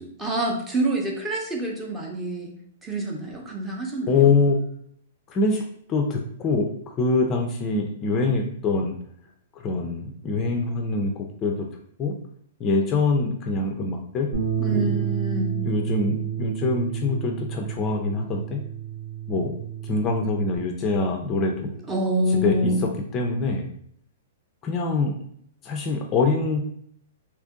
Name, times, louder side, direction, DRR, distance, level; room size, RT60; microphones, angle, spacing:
voice 1, 0.2-2.5 2.8-4.3 14.6-15.6 21.9-22.8, right 1 dB, 10° right, 0 dB, 0.7 m, -26 dB
voice 2, 4.1-4.6 5.3-5.6 5.9-6.7 7.0-9.0 9.6-11.7 12.0-12.1 12.6-14.3 14.7-15.1 15.6-18.6 19.3-19.5 19.8-21.7 22.3-22.7 23.1-23.6 24.6-25.1 25.6-26.6, left 3 dB, 25° left, 2 dB, 0.4 m, -24 dB
Bass guitar, 14.3-20.6, right 9 dB, 80° right, 1.3 m, -30 dB
2.8 x 2.5 x 3.6 m, 0.67 s
hypercardioid pair, 145°, 0 cm